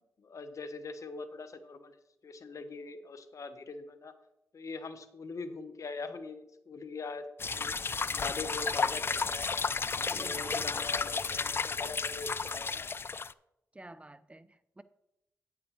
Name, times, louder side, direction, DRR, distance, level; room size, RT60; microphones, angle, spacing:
voice 1, 0.2-2.0 2.2-4.1 4.5-7.3 7.5-7.7 8.1-9.5 10.0-12.9, left 4 dB, 60° left, 1.0 m, -42 dB
sound 1, 7.4-13.3, left 4 dB, 40° left, 0.3 m, -33 dB
voice 2, 10.0-10.7 13.7-14.8, right 1 dB, 20° right, 0.5 m, -50 dB
9.5 x 9.3 x 3.2 m
supercardioid pair, 45°, 6 cm